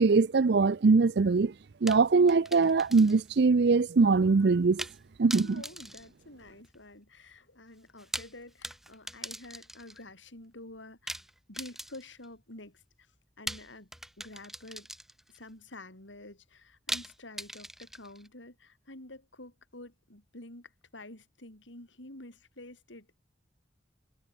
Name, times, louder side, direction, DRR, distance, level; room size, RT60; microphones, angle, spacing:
voice 1, 0.0-1.5 1.8-4.8 5.2-5.5, right 4 dB, 60° right, 0.5 m, -22 dB
sound 1, 1.9-3.4 3.7-3.8 4.8-5.0 5.3-6.8 7.9-10.0 11.1-12.3 13.5-15.4 16.9-18.3, right 1 dB, ahead, 0.8 m, -41 dB
voice 2, 5.3-11.2 11.5-13.1 13.4-13.9 14.2-14.9 15.3-23.2, left 2 dB, 85° left, 5.4 m, -49 dB
head